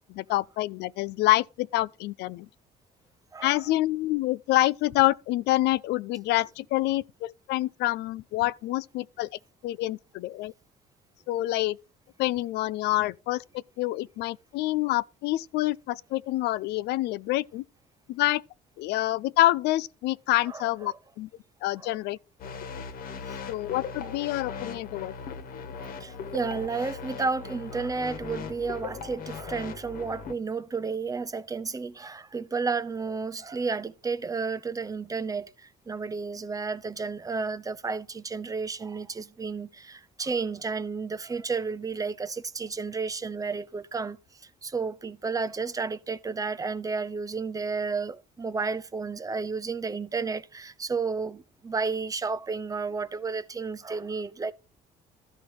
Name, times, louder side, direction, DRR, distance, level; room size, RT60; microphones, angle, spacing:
voice 1, 0.1-2.5 3.4-9.3 9.6-10.5 11.3-11.8 12.2-17.6 18.1-18.4 18.8-21.3 21.6-22.2 23.5-25.1, left 17 dB, 80° left, 0.5 m, -27 dB
voice 2, 20.5-20.9 21.8-21.9 25.8-35.5 35.9-44.2 44.6-54.5, right 4 dB, 20° right, 0.6 m, -32 dB
sound 1, 22.4-30.3, left 6 dB, 60° left, 1.4 m, -39 dB
13.0 x 5.5 x 4.8 m
cardioid pair, 110°, 17 cm